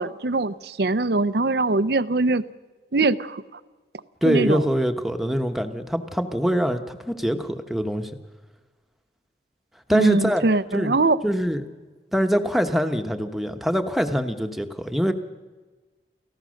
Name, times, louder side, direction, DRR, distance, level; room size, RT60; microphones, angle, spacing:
voice 1, 0.0-2.4 2.9-3.4 4.2-4.6 9.9-11.2, right 3 dB, 60° right, 0.7 m, -22 dB
voice 2, 4.2-8.1 9.9-10.4 10.7-11.6 12.1-15.1, equal, ahead, 1.1 m, -24 dB
29.5 x 15.0 x 6.5 m
head